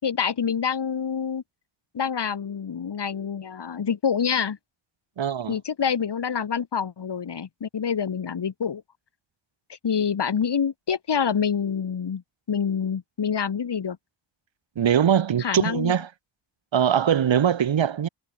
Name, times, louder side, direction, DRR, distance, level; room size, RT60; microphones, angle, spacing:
voice 1, 0.0-1.4 1.9-4.6 5.5-8.8 9.7-12.2 12.5-14.0 15.4-15.9, left 7 dB, 60° left, 4.7 m, -26 dB
voice 2, 5.2-5.6 14.8-16.1 16.7-18.1, right 9 dB, 75° right, 2.3 m, -22 dB
wide cardioid pair, 135°, 45 cm